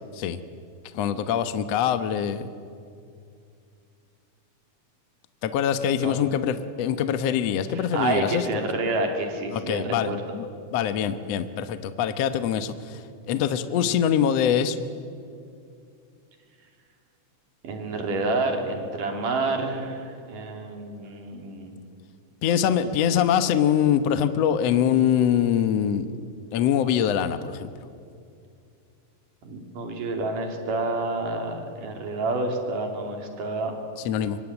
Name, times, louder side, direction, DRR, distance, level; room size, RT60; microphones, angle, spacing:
voice 1, 0.9-2.5 5.4-8.4 9.5-10.5 10.7-13.0 13.3-14.8 22.4-26.1 26.5-27.7 34.1-34.4, left 9 dB, 60° left, 10 dB, 1.9 m, -24 dB
voice 2, 7.7-10.2 17.6-21.8 29.4-33.7, right 2 dB, 75° right, 4 dB, 4.5 m, -28 dB
25.0 x 23.5 x 9.9 m, 2.4 s
omnidirectional pair, 3.8 m